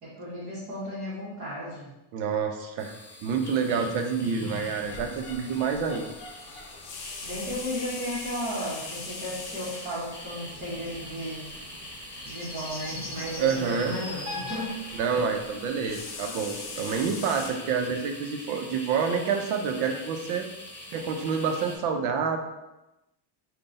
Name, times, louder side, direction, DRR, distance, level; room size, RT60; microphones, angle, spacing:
voice 1, 0.0-1.9 7.2-11.5 12.2-14.8, equal, 35° right, -9 dB, 1.1 m, -34 dB
voice 2, 2.1-2.9 3.2-6.1 13.4-14.0 14.9-20.5 20.9-22.4, right 6 dB, 80° right, 5 dB, 0.7 m, -28 dB
sound 1, 2.8-21.8, left 1 dB, 5° left, 0.7 m, -43 dB
sound 2, 4.4-17.5, left 4 dB, 45° left, 0.7 m, -42 dB
sound 3, 10.5-16.0, left 1 dB, 25° left, 1.2 m, -43 dB
3.8 x 2.3 x 3.9 m, 0.95 s
cardioid pair, 175°, 49 cm